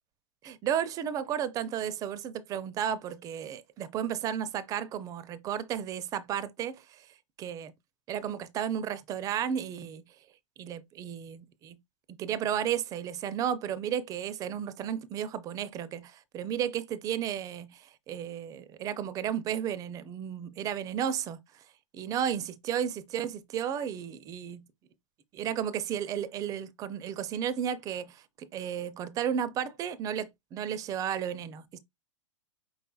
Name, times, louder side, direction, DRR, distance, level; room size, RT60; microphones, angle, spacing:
voice 1, 0.4-7.1 7.4-7.7 8.1-10.0 10.6-11.8 12.1-21.6 21.9-24.6 25.3-31.8, right 9 dB, 20° right, 0.4 m, -33 dB
5.5 x 3.2 x 2.3 m
figure-of-eight pair, 105°, 17 cm